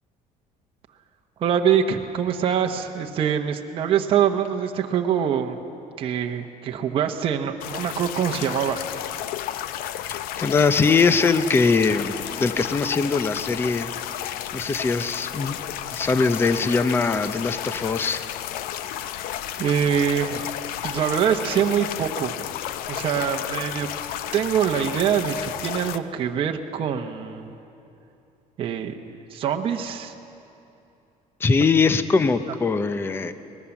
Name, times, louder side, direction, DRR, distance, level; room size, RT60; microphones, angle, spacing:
voice 1, 1.4-5.6 6.0-8.8 19.0-19.2 19.6-20.5 20.8-22.5 22.9-23.9 24.3-27.5 28.6-29.0 29.3-30.1, right 8 dB, 35° right, 3 dB, 1.0 m, -24 dB
sound 1, 7.6-26.0, left 12 dB, 75° left, 0.7 m, -32 dB
voice 2, 10.1-15.6 15.9-18.2 31.4-33.3, left 4 dB, 15° left, 12 dB, 0.6 m, -22 dB
23.0 x 19.5 x 7.1 m, 2.8 s
cardioid pair, 170°, 15 cm